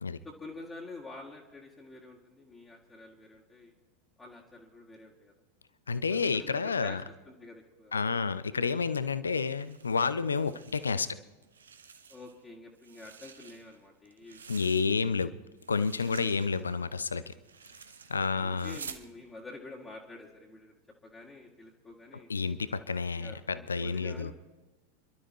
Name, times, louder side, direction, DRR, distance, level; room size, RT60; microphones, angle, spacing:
voice 1, 0.2-3.7 4.2-5.3 6.1-7.0 7.3-7.9 12.1-14.4 18.3-20.7 21.0-22.3 23.2-23.4 23.8-24.3, left 2 dB, 15° left, -4 dB, 2.0 m, -48 dB
voice 2, 5.9-7.0 7.9-11.1 14.5-15.3 15.7-17.3 18.1-18.8 22.3-24.3, left 5 dB, 75° left, 14 dB, 0.6 m, -30 dB
sound 1, 9.5-11.1 11.4-12.4 12.8-15.2 15.6-19.1, right 6 dB, 70° right, 0.8 m, -50 dB
29.0 x 12.5 x 3.1 m, 1.2 s
figure-of-eight pair, 85°, 0 cm